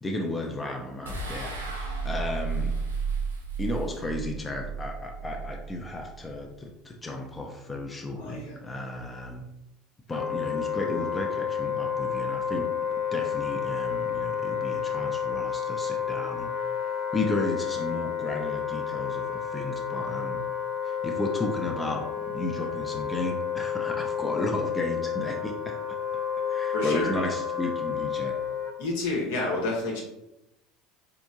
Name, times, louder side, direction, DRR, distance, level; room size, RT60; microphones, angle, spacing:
voice 1, 0.0-2.7 3.6-9.4 10.1-12.7 13.1-20.4 20.8-26.0 26.5-28.3, left 2 dB, 20° left, 1 dB, 0.5 m, -33 dB
sound 1, 1.1-6.4, right 5 dB, 85° right, 0.6 m, -33 dB
voice 2, 8.1-8.6 26.7-27.3 28.8-30.0, left 2 dB, 70° left, -2 dB, 1.0 m, -30 dB
Wind instrument woodwind instrument, 10.1-28.7, left 7 dB, 45° left, 1.0 m, -31 dB
4.2 x 2.9 x 2.4 m, 0.89 s
figure-of-eight pair, 70°, 0 cm